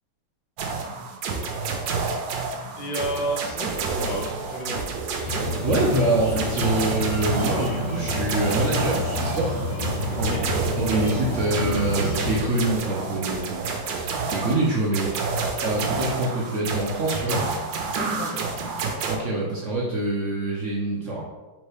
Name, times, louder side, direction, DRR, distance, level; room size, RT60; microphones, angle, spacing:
sound 1, 0.6-19.2, right 4 dB, 90° right, 1.4 m, -29 dB
voice 1, 2.8-4.9 10.1-10.5 10.9-11.2 17.9-18.5, right 1 dB, 70° left, -1 dB, 1.6 m, -32 dB
sound 2, 5.2-12.4, left 1 dB, 45° left, 1.1 m, -29 dB
voice 2, 5.6-9.6 10.2-10.4 10.8-15.1 15.6-17.7 19.1-21.2, right 2 dB, 60° right, -4 dB, 0.8 m, -25 dB
4.2 x 3.5 x 3.3 m, 1.2 s
omnidirectional pair, 2.0 m